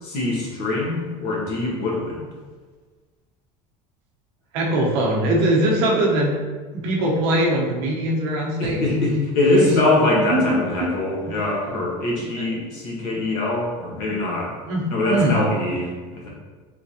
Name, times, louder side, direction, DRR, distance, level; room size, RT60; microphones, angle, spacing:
voice 1, 0.0-2.3 8.6-14.5 14.9-16.3, left 2 dB, 60° left, -3 dB, 1.1 m, -23 dB
voice 2, 4.5-6.4 6.7-8.8 9.5-9.7 10.1-10.9 12.2-12.3 14.7-15.4, right 1 dB, 70° right, -2 dB, 0.8 m, -21 dB
3.6 x 3.0 x 2.7 m, 1.4 s
cardioid pair, 155°, 16 cm